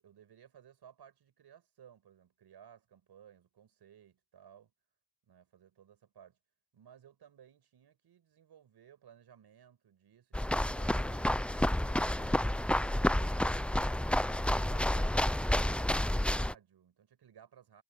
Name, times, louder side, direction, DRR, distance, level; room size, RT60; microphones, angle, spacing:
voice 1, 0.0-4.7 5.3-6.4 6.7-12.6 15.5-17.8, right 9 dB, 85° right, 5.6 m, -59 dB
sound 1, 10.3-16.5, left 1 dB, 5° left, 0.4 m, -30 dB
wide cardioid pair, 120°, 38 cm